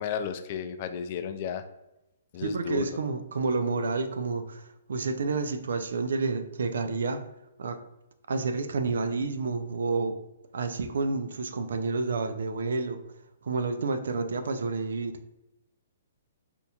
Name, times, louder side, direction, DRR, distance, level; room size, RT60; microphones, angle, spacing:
voice 1, 0.0-1.6 2.3-2.8, left 7 dB, 45° left, 10 dB, 0.3 m, -33 dB
voice 2, 2.4-7.2 7.6-7.8 8.3-10.2 10.5-13.0 13.4-15.2, right 4 dB, 70° right, 8 dB, 0.3 m, -29 dB
4.3 x 2.7 x 2.3 m, 0.91 s
hypercardioid pair, 130°, 0 cm